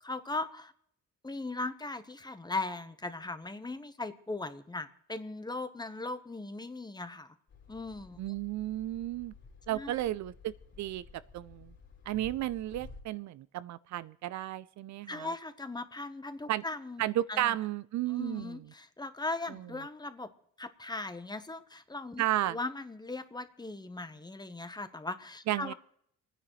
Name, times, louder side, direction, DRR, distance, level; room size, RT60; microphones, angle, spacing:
voice 1, 0.1-0.7 1.2-7.3 7.7-8.2 9.7-9.9 15.1-17.5 18.1-20.3 20.6-25.7, left 2 dB, 15° left, 11 dB, 1.0 m, -39 dB
sound 1, 7.5-13.0, left 4 dB, 50° left, 3.8 m, -53 dB
voice 2, 8.2-9.3 9.7-10.5 10.8-11.0 11.3-11.7 12.1-15.3 16.5-16.6 17.0-18.6 22.2-22.6 25.5-25.7, right 14 dB, 65° right, 18 dB, 0.5 m, -33 dB
29.5 x 10.0 x 3.1 m, 0.69 s
cardioid pair, 90°, 30 cm